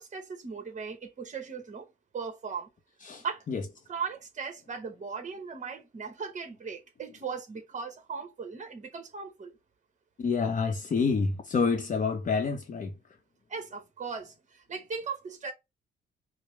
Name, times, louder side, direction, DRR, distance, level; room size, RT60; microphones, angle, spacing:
voice 1, 0.0-1.9 2.1-2.7 3.2-3.4 3.9-9.6 13.5-15.5, right 5 dB, 40° right, 1.1 m, -38 dB
voice 2, 3.0-3.6 10.2-12.9, left 5 dB, 40° left, 0.7 m, -28 dB
4.7 x 2.1 x 3.2 m
cardioid pair, 90°, 20 cm